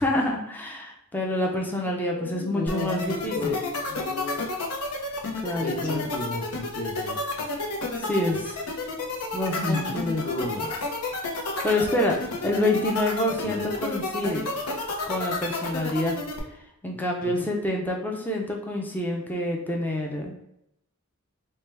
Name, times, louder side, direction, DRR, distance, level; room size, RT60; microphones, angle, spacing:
voice 1, 0.0-3.3 5.4-6.1 8.0-8.6 9.3-10.2 11.6-12.2 12.4-14.5 15.1-16.2 16.8-20.4, left 1 dB, 10° left, 0 dB, 0.4 m, -27 dB
voice 2, 2.1-4.4 5.6-7.2 8.3-8.4 9.5-9.9 10.2-10.7 13.4-13.7 17.2-17.5, left 2 dB, 40° left, 1 dB, 0.7 m, -33 dB
sound 1, 2.7-16.4, left 3 dB, 85° left, 0.7 m, -30 dB
4.3 x 2.2 x 3.3 m, 0.79 s
head